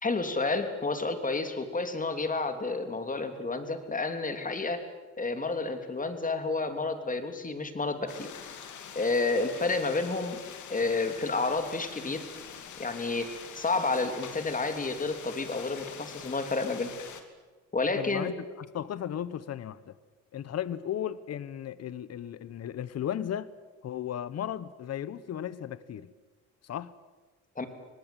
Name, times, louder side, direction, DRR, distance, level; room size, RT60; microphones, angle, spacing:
voice 1, 0.0-4.8 5.2-8.3 8.9-10.4 10.7-12.2 12.8-13.3 13.5-16.9 17.7-18.3 27.6-27.7, left 3 dB, 25° left, 3.2 m, -30 dB
sound 1, 8.1-17.2, left 8 dB, 75° left, 2.7 m, -44 dB
voice 2, 18.0-18.3 18.7-19.9 20.3-23.5 23.8-26.1 26.7-26.9, left 10 dB, 55° left, 1.1 m, -35 dB
24.5 x 19.0 x 9.1 m
cardioid pair, 90°, 30 cm